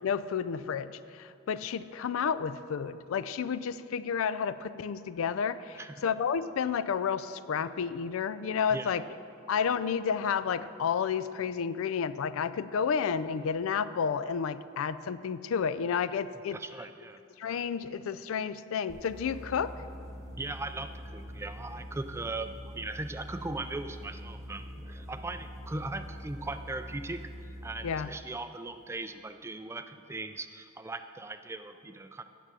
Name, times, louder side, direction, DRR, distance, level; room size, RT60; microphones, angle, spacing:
voice 1, 0.0-9.0 9.5-16.6 17.4-19.7 27.8-28.1, left 7 dB, 80° left, 14 dB, 0.4 m, -31 dB
voice 2, 16.5-17.2 20.4-27.3 27.6-32.2, right 2 dB, 15° right, 9 dB, 0.3 m, -39 dB
sound 1, 18.9-28.0, equal, 15° left, 1.2 m, -44 dB
9.1 x 7.3 x 6.9 m, 2.6 s
head